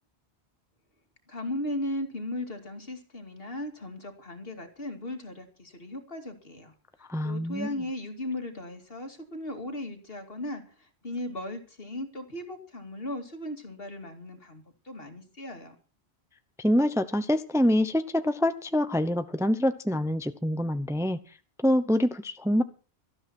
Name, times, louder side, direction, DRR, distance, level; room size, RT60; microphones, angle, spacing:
voice 1, 1.3-6.7 7.2-15.8, left 1 dB, 65° left, 6 dB, 2.7 m, -37 dB
voice 2, 7.1-7.7 16.6-21.2 21.6-22.6, left 1 dB, 5° right, 10 dB, 0.8 m, -25 dB
18.0 x 13.5 x 4.4 m, 0.36 s
omnidirectional pair, 1.1 m